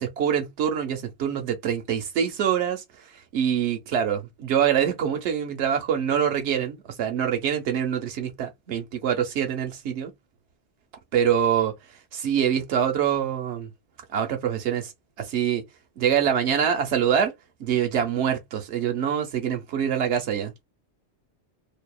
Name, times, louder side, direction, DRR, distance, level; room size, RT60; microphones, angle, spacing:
voice 1, 0.0-2.8 3.3-10.1 11.1-11.7 12.1-13.7 14.1-14.9 15.2-15.6 16.0-17.3 17.6-20.5, right 8 dB, 80° right, 1.0 m, -25 dB
2.7 x 2.1 x 2.3 m
omnidirectional pair, 1.2 m